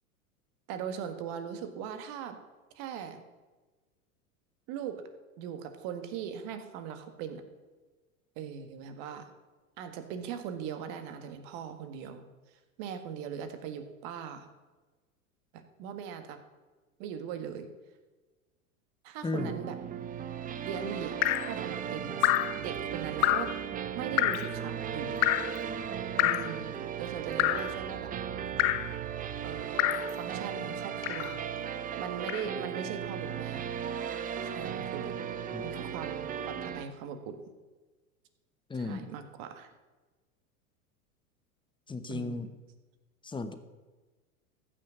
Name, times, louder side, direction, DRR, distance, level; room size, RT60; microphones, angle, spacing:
voice 1, 0.7-2.4 2.8-3.2 4.7-5.0 5.4-7.4 8.4-9.3 9.8-12.3 12.5-14.5 15.5-16.4 17.0-17.7 19.0-19.8 20.6-21.2 21.5-22.2 22.5-23.5 24.0-25.3 26.2-28.1 29.4-31.4 32.0-33.7 34.4-35.2 35.6-37.4 38.7-39.7 42.1-42.4, right 8 dB, 50° right, 8 dB, 1.8 m, -40 dB
voice 2, 19.2-19.6 35.5-35.6 38.7-39.1 41.9-42.5 43.2-43.6, left 3 dB, 10° left, 10 dB, 1.0 m, -35 dB
sound 1, 19.4-36.8, right 8 dB, 20° right, 0.6 m, -36 dB
Drip, 21.2-21.5 22.2-22.6 23.2-23.6 24.2-24.5 25.2-25.6 26.2-26.6 27.4-27.7 28.6-28.9 29.8-30.1 31.0-31.4 32.3-32.5, left 17 dB, 55° left, 0.8 m, -27 dB
sound 2, 22.6-26.6 27.2-29.6, right 13 dB, 70° right, 2.0 m, -49 dB
14.5 x 6.4 x 8.1 m, 1.3 s
hypercardioid pair, 95°, 44 cm